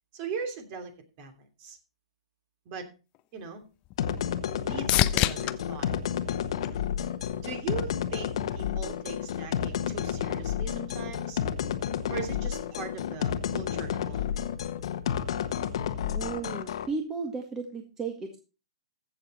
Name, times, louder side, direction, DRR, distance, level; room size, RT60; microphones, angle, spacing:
voice 1, 0.1-1.8 2.6-2.9 3.3-3.6 4.6-5.9 7.4-11.4 12.1-14.4, right 5 dB, 40° right, 6 dB, 2.9 m, -39 dB
sound 1, 3.1-7.4 7.9-8.5 16.3-16.4, left 16 dB, 30° left, 0.5 m, -31 dB
sound 2, 4.0-16.9, left 9 dB, 60° left, 1.3 m, -31 dB
voice 2, 16.1-18.4, right 4 dB, 15° right, 3 dB, 1.6 m, -34 dB
15.0 x 6.8 x 4.2 m, 0.32 s
hypercardioid pair, 130°, 3 cm